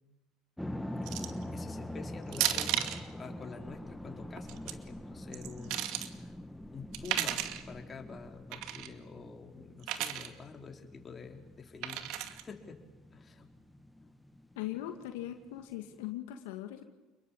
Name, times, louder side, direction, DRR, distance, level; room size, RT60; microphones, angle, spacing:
sound 1, 0.6-16.1, left 1 dB, 5° left, 1.9 m, -44 dB
sound 2, 1.1-1.4 2.3-3.0 4.4-4.7 5.3-6.1 6.9-7.6 8.5-8.9 9.8-10.3 11.8-12.4, right 12 dB, 70° right, 2.2 m, -33 dB
voice 1, 1.5-6.4 6.7-12.8 13.1-13.5 14.0-14.1, left 5 dB, 30° left, 3 dB, 4.9 m, -48 dB
voice 2, 14.6-16.8, left 13 dB, 85° left, 6 dB, 2.1 m, -40 dB
29.5 x 22.0 x 8.8 m, 1.1 s
supercardioid pair, 85°, 0 cm